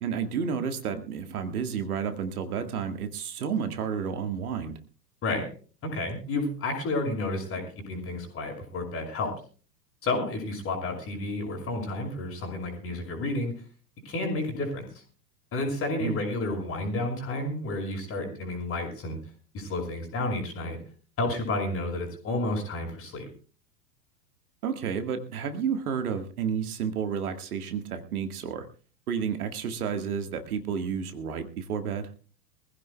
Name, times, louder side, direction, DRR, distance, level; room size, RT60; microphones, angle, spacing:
voice 1, 0.0-4.8 16.0-16.2 24.6-28.6 29.1-32.1, right 7 dB, 60° right, 7 dB, 1.9 m, -31 dB
voice 2, 5.8-9.3 10.0-13.5 14.0-14.9 15.5-19.2 19.5-20.8 21.2-23.3, left 2 dB, 25° left, 3 dB, 5.6 m, -31 dB
23.5 x 15.5 x 2.3 m, 0.38 s
figure-of-eight pair, 95°, 49 cm